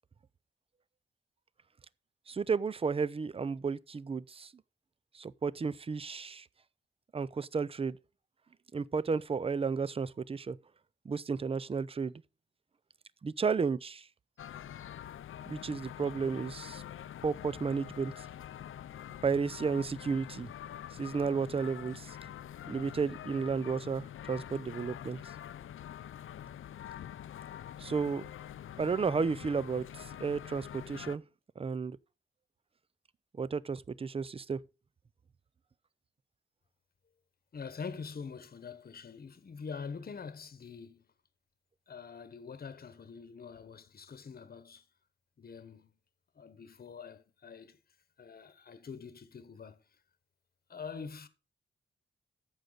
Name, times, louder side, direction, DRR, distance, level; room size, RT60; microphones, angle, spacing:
voice 1, 2.3-4.5 5.1-6.5 7.1-8.0 8.7-10.6 11.0-12.2 13.2-14.1 15.5-16.8 17.2-18.1 19.2-20.5 21.0-22.2 22.7-25.2 27.8-28.2 28.8-31.2 31.6-32.0 33.4-34.6, right 5 dB, 30° right, 0.4 m, -33 dB
sound 1, 14.4-31.2, left 10 dB, 80° left, 0.5 m, -45 dB
voice 2, 37.5-41.1 41.9-44.9 45.4-45.9 46.3-47.8 48.2-49.8 50.7-51.3, left 5 dB, 45° left, 1.1 m, -45 dB
11.5 x 7.9 x 3.9 m
wide cardioid pair, 120°, 21 cm